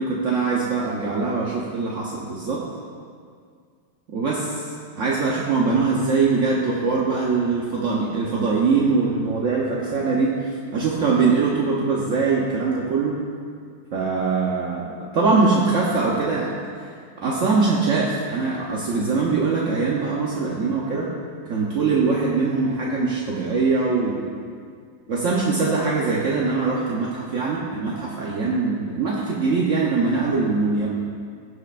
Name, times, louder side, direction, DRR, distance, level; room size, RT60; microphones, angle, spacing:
voice 1, 0.0-2.6 4.1-4.7 4.9-13.1 13.9-16.9 17.2-21.1 21.5-24.3 25.1-30.9, right 4 dB, 60° right, -4 dB, 0.8 m, -22 dB
17.5 x 6.4 x 2.5 m, 2.1 s
omnidirectional pair, 2.3 m